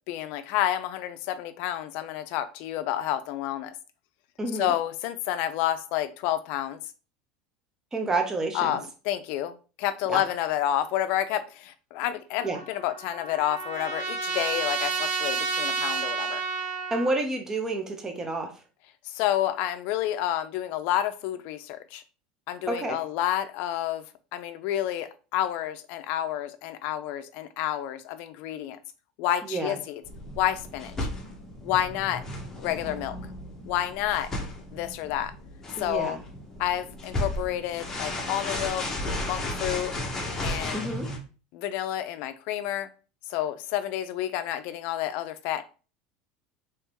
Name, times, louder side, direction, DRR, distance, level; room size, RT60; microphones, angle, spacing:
voice 1, 0.1-3.7 4.5-6.8 8.5-16.4 19.0-22.0 22.5-24.0 24.3-28.8 29.2-30.0 30.4-31.1 31.6-32.2 32.6-33.2 33.7-34.3 34.7-35.3 35.8-36.2 36.6-38.8 39.3-39.9 40.4-40.8 41.5-42.9 43.3-45.6, left 12 dB, 60° left, 11 dB, 0.4 m, -29 dB
voice 2, 4.4-4.7 7.9-8.8 10.1-10.2 12.4-12.6 16.9-18.5 22.7-23.0 29.4-29.8 35.8-36.2 40.7-41.1, right 2 dB, 15° right, 4 dB, 0.7 m, -29 dB
Trumpet, 12.4-17.1, right 5 dB, 50° right, 0.7 m, -30 dB
sound 1, 30.0-41.2, left 1 dB, 15° left, 0.9 m, -34 dB
3.5 x 3.0 x 2.9 m, 0.35 s
supercardioid pair, 130°, 3 cm